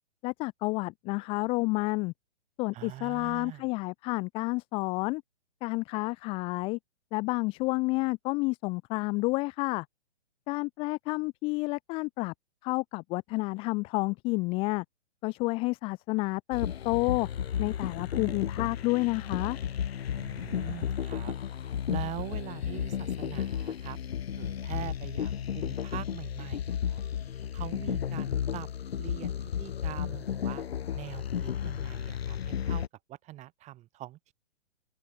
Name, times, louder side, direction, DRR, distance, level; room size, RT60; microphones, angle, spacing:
voice 1, 0.2-2.1 2.6-5.2 5.6-6.8 7.1-9.8 10.5-12.3 12.6-14.8 15.2-17.3 17.6-19.6, left 24 dB, 15° left, 0.8 m, -30 dB
voice 2, 2.7-3.7 20.2-21.3 21.9-24.0 24.4-27.0 27.5-28.7 29.0-30.6 30.9-34.3, right 15 dB, 20° right, 5.6 m, -43 dB
sound 1, 16.5-32.9, left 9 dB, 60° left, 5.6 m, -33 dB
open air
hypercardioid pair, 150°, 35 cm